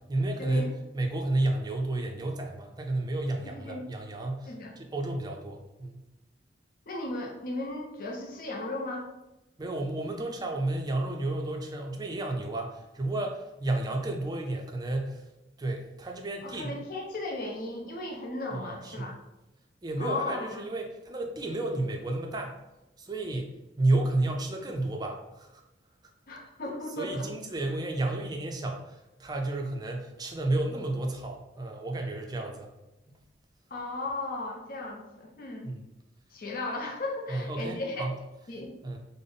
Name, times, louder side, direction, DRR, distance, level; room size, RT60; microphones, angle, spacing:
voice 1, 0.1-6.0 9.6-15.2 15.6-16.8 18.5-19.2 19.8-22.6 23.0-25.6 27.0-32.7 35.6-35.8 37.3-38.2 38.8-39.0, right 2 dB, 20° right, 2 dB, 0.4 m, -31 dB
voice 2, 3.5-3.8 4.5-4.7 6.9-9.1 16.4-19.1 20.0-20.7 26.3-27.3 33.7-35.7 36.3-38.1 38.5-38.8, left 2 dB, 50° left, 0 dB, 0.6 m, -36 dB
3.5 x 2.0 x 3.9 m, 0.95 s
head